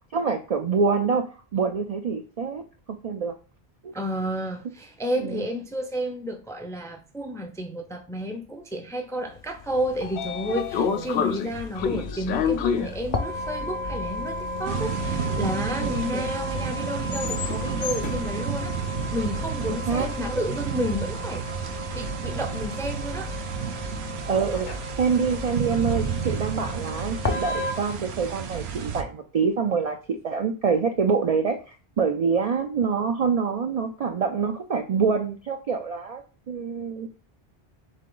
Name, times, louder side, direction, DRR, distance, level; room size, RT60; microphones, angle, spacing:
voice 1, 0.1-2.6 3.0-3.3 3.8-3.9 5.2-5.5 10.8-11.0 15.8-16.0 19.7-20.1 24.2-37.1, right 5 dB, 55° right, 0.4 m, -26 dB
voice 2, 3.9-18.7 19.1-21.5 21.9-23.3, equal, 5° left, 0.4 m, -31 dB
Train / Sliding door, 9.6-19.7, left 7 dB, 80° left, 0.8 m, -31 dB
sound 1, 11.5-27.7, left 2 dB, 45° left, 0.7 m, -34 dB
sound 2, 14.6-29.0, right 7 dB, 85° right, 1.0 m, -32 dB
3.7 x 3.6 x 3.7 m
omnidirectional pair, 1.1 m